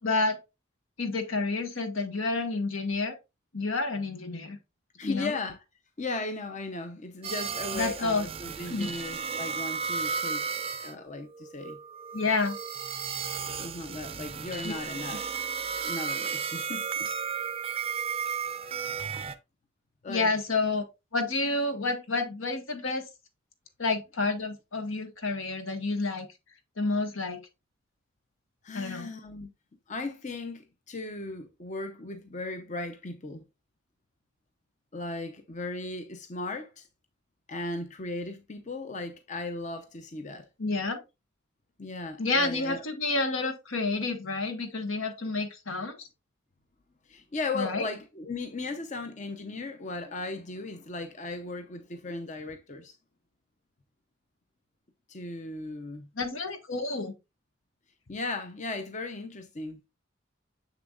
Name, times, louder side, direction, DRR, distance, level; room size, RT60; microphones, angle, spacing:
voice 1, 0.0-0.4 1.0-3.2 3.5-4.6 5.0-5.3 7.7-8.2 8.7-8.9 12.1-12.6 14.6-14.7 20.1-20.8 21.1-23.1 23.8-26.3 26.8-27.4 28.7-29.1 40.6-41.0 42.2-46.1 47.5-47.8 56.2-57.1, left 3 dB, 75° left, 1.4 m, -29 dB
voice 2, 5.0-5.6 6.0-10.5 10.8-11.8 13.6-15.2 15.8-17.2 20.0-20.3 28.6-29.5 29.9-33.4 34.9-36.9 37.5-40.5 41.8-42.8 47.1-53.0 55.1-56.1 58.1-59.8, left 3 dB, 35° left, 0.7 m, -37 dB
sound 1, 7.2-10.9 11.3-19.3, right 6 dB, 30° right, 0.5 m, -34 dB
7.0 x 6.7 x 2.4 m
head